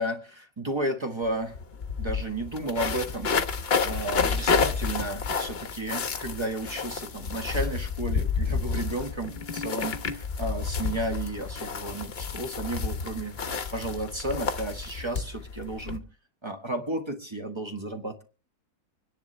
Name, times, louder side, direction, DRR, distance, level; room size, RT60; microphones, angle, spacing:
voice 1, 0.0-1.6 2.0-3.3 3.6-16.0 16.4-18.2, right 1 dB, 20° right, 4 dB, 1.6 m, -33 dB
sound 1, 1.2-1.3 1.5-16.0, left 5 dB, 45° left, 1.1 m, -30 dB
25.5 x 10.5 x 3.3 m, 0.36 s
omnidirectional pair, 1.6 m